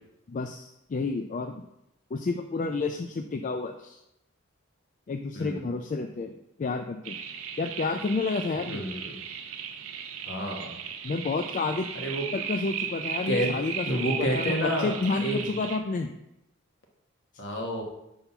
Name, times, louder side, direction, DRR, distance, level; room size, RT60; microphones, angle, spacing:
voice 1, 0.3-1.6 2.1-4.0 5.1-6.3 6.6-7.2 7.6-8.8 11.0-11.9 12.3-16.1, left 3 dB, 40° left, 5 dB, 0.3 m, -30 dB
sound 1, 7.0-15.8, right 7 dB, 85° right, 0.6 m, -36 dB
voice 2, 8.7-9.1 10.2-10.7 11.9-12.3 13.3-13.5 13.8-15.5 17.4-17.8, equal, 60° left, 1 dB, 1.4 m, -29 dB
5.5 x 3.8 x 5.8 m, 0.85 s
head